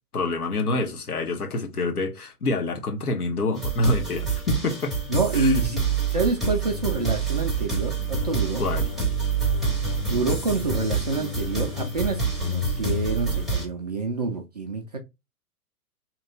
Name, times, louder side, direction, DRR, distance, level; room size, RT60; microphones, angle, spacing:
voice 1, 0.1-5.0 5.3-5.6 8.6-8.9, left 2 dB, 70° left, 1.1 m, -27 dB
sound 1, 3.5-13.6, right 4 dB, ahead, 0.7 m, -27 dB
voice 2, 5.1-5.8 6.1-8.6 10.0-15.0, right 3 dB, 30° right, 0.4 m, -27 dB
2.9 x 2.9 x 3.8 m
figure-of-eight pair, 110°, 46 cm